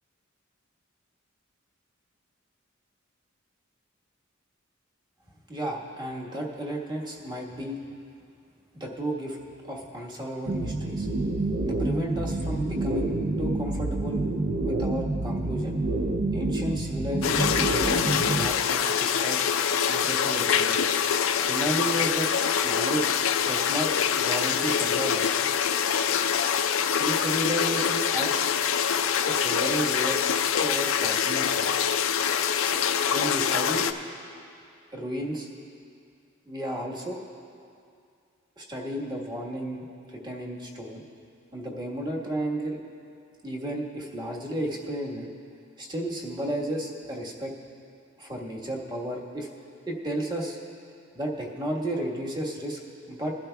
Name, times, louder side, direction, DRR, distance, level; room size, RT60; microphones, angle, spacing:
voice 1, 5.5-7.8 8.7-9.4 9.6-11.1 11.6-14.2 14.6-15.8 16.3-19.4 19.9-20.9 21.5-22.3 22.6-23.1 23.4-23.9 24.2-25.2 27.0-28.6 29.3-30.2 30.6-31.7 33.1-33.8 34.9-35.5 36.5-37.2 38.6-41.0 41.5-42.8 43.4-45.3 45.8-47.5 48.2-49.5 49.9-50.6 51.1-52.8 53.1-53.4, right 1 dB, 20° right, -2 dB, 1.4 m, -33 dB
sound 1, 10.5-18.5, right 2 dB, 45° right, 0.5 m, -28 dB
sound 2, 17.2-33.9, left 7 dB, 80° left, 0.5 m, -25 dB
21.5 x 12.0 x 2.3 m, 2.4 s
head